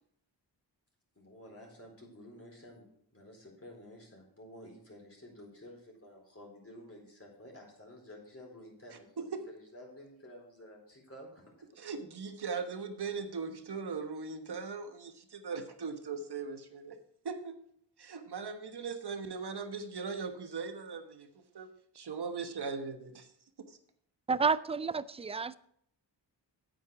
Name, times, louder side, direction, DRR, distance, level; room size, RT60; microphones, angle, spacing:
voice 1, 1.2-2.9 3.1-11.7, left 1 dB, 30° left, -1 dB, 4.2 m, -52 dB
voice 2, 11.8-17.0 17.2-17.6 18.0-21.3 21.5-21.7 21.9-23.3 23.7-23.8, right 5 dB, 65° right, 8 dB, 1.3 m, -39 dB
voice 3, 24.3-25.6, right 4 dB, 15° right, 18 dB, 0.3 m, -30 dB
9.1 x 8.1 x 4.7 m, 0.68 s
cardioid pair, 55°, 43 cm